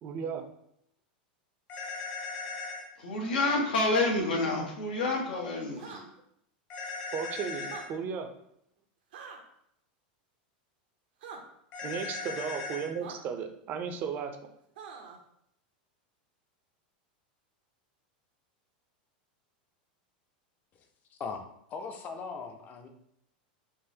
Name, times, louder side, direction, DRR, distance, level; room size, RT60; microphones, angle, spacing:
voice 1, 0.0-0.4 4.5-4.7 7.1-8.3 11.8-14.3, right 6 dB, 40° right, 6 dB, 0.5 m, -35 dB
sound 1, 1.7-2.8 6.7-7.9 11.7-12.9, left 4 dB, 50° left, 1.2 m, -38 dB
voice 2, 3.0-6.0, left 2 dB, 90° left, 0 dB, 1.0 m, -28 dB
sound 2, 5.7-6.0 7.6-7.9 9.1-9.4 11.2-11.4 13.0-13.2 14.8-15.2, right 6 dB, 80° right, 0.7 m, -44 dB
voice 3, 21.2-22.9, left 5 dB, 35° left, 5 dB, 0.5 m, -39 dB
3.7 x 2.5 x 2.7 m, 0.74 s
supercardioid pair, 120°, 5 cm